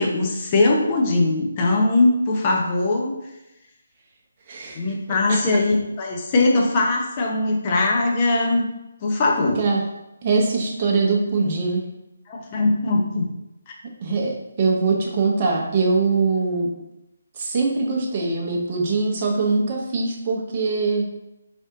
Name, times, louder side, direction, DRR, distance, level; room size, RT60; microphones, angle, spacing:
voice 1, 0.0-3.1 4.7-8.7 9.0-9.6 12.3-13.3 13.7-13.8, left 2 dB, 30° left, 0 dB, 0.7 m, -20 dB
voice 2, 4.5-4.8 5.3-5.4 9.6-9.8 10.2-11.8 14.0-16.7 17.4-21.1, right 4 dB, 35° right, -1 dB, 0.7 m, -22 dB
3.4 x 2.6 x 3.7 m, 0.93 s
figure-of-eight pair, 145°, 0 cm